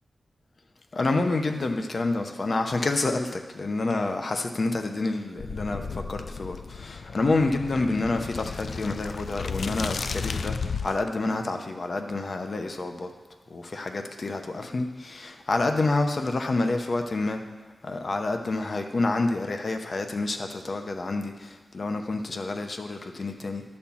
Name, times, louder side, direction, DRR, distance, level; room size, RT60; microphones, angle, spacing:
voice 1, 0.9-13.1 13.5-17.4 17.8-23.6, left 2 dB, 50° left, 5 dB, 0.8 m, -28 dB
sound 1, 5.4-11.1, left 5 dB, 75° left, 0.4 m, -34 dB
11.5 x 4.4 x 7.1 m, 1.2 s
wide cardioid pair, 85°, 0 cm